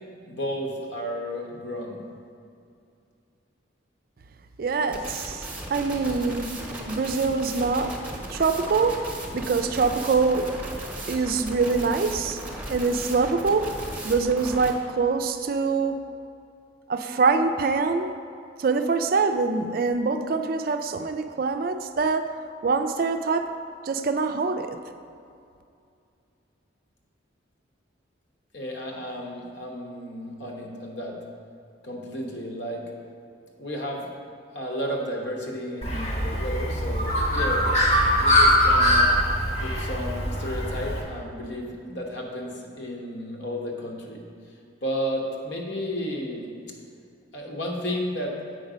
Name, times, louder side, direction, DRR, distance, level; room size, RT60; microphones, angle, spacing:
voice 1, 0.2-2.0 28.5-31.2 31.8-32.9 33.6-34.1 34.5-37.8 38.1-39.1 39.6-44.2 44.8-46.5 47.3-48.4, equal, 60° left, 0 dB, 1.2 m, -32 dB
voice 2, 4.6-6.5 6.9-7.9 8.3-10.5 11.1-12.4 12.7-13.7 14.0-16.0 16.9-18.1 18.6-22.3 22.6-23.5 23.8-24.8, right 4 dB, 50° right, 7 dB, 0.4 m, -24 dB
sound 1, 4.9-14.7, right 1 dB, 10° right, 0.9 m, -36 dB
Bird, 35.8-41.0, equal, 35° left, 1.0 m, -22 dB
7.9 x 5.4 x 5.0 m, 2.5 s
head